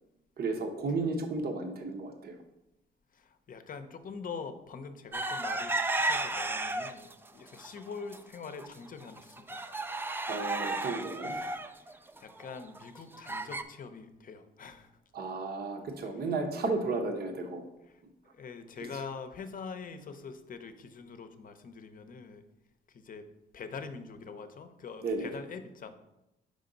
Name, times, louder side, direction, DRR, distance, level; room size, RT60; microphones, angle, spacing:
voice 1, 0.4-2.4 10.3-11.4 15.1-17.6 18.8-19.0 25.0-25.4, right 3 dB, 50° right, 5 dB, 0.8 m, -33 dB
voice 2, 3.1-9.6 11.2-11.6 11.9-14.9 18.2-22.4 22.9-25.9, left 5 dB, 45° left, 9 dB, 0.6 m, -44 dB
sound 1, 5.1-7.1 7.6-8.2 8.6-8.7 9.0-13.6, right 2 dB, 10° right, 0.3 m, -33 dB
5.1 x 5.0 x 3.9 m, 0.91 s
cardioid pair, 90°, 20 cm